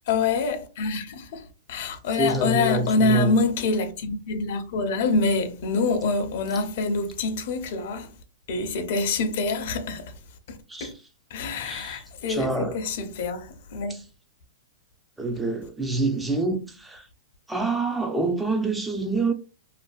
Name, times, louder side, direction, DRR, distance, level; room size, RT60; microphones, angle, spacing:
voice 1, 0.1-8.1 8.5-10.1 10.5-10.9 11.3-14.0, left 3 dB, 60° left, 0.5 m, -26 dB
voice 2, 2.2-3.4 10.7-10.9 11.6-12.0 12.3-12.8 13.9-14.0 15.2-17.1 17.5-19.3, right 2 dB, 5° right, 0.4 m, -26 dB
2.5 x 2.2 x 2.2 m
hypercardioid pair, 115°, 0 cm